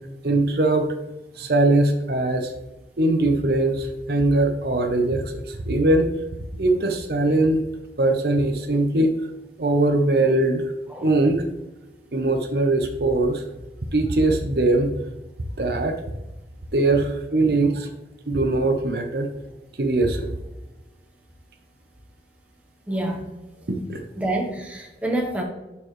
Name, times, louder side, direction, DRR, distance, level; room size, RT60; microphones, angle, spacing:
voice 1, 0.2-0.9 1.4-2.5 3.0-6.1 6.6-7.6 8.0-9.1 9.6-10.6 11.0-11.4 12.1-13.4 13.9-14.9 15.6-16.0 16.7-17.9 18.3-19.3 19.8-20.4 23.7-24.0, right 2 dB, 60° right, 5 dB, 0.8 m, -21 dB
voice 2, 22.9-23.3 24.2-25.4, right 1 dB, 10° right, 1 dB, 1.2 m, -27 dB
12.0 x 4.6 x 3.2 m, 1.1 s
head